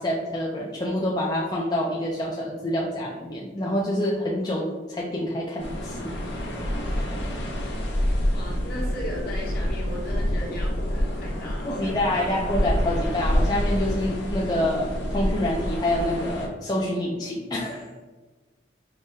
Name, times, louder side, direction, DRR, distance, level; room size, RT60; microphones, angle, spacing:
voice 1, 0.0-6.1 11.6-17.9, left 1 dB, 20° left, -3 dB, 0.4 m, -27 dB
sound 1, 5.6-16.5, equal, 70° left, 0.8 m, -27 dB
voice 2, 8.3-12.3, left 1 dB, 55° left, -5 dB, 1.1 m, -36 dB
4.8 x 2.2 x 3.1 m, 1.3 s
head